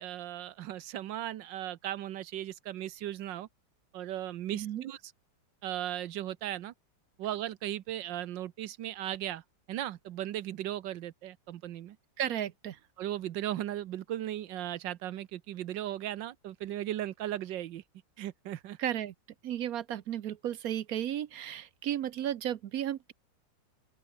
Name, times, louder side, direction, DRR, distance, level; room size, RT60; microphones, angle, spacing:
voice 1, 0.0-3.5 3.9-5.0 5.6-6.7 7.2-9.4 9.7-12.0 13.0-17.8 18.2-18.8, right 12 dB, 80° right, 1.5 m, -37 dB
voice 2, 4.5-4.9 12.2-12.8 18.8-19.1 19.4-23.1, right 11 dB, 60° right, 1.0 m, -34 dB
open air
omnidirectional pair, 2.0 m